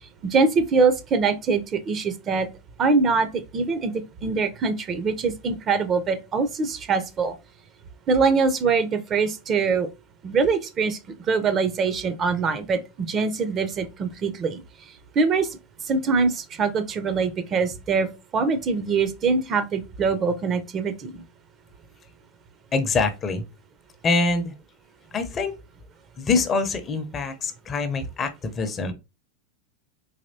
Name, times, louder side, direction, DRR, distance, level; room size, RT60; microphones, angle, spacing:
voice 1, 0.2-2.5 2.8-3.9 4.2-7.4 8.1-9.9 10.2-11.0 11.3-14.6 15.2-15.5 15.9-21.2, right 4 dB, 35° right, 0.6 m, -23 dB
voice 2, 22.7-23.4 24.0-24.5 25.1-25.5 26.2-28.9, left 3 dB, 30° left, 0.6 m, -24 dB
4.1 x 2.9 x 2.7 m
hypercardioid pair, 90°, 0 cm